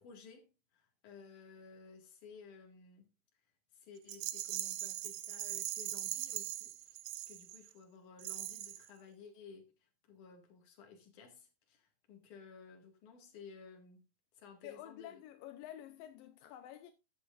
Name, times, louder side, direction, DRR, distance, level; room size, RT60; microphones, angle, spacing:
voice 1, 0.0-3.1 3.7-7.0 7.3-14.1 14.3-15.2, left 5 dB, 65° left, 3.5 m, -55 dB
Rattle, 4.1-7.7 8.2-8.9, right 14 dB, 85° right, 2.5 m, -40 dB
voice 2, 14.6-16.9, left 12 dB, 85° left, 2.5 m, -49 dB
13.5 x 9.9 x 2.5 m
omnidirectional pair, 4.0 m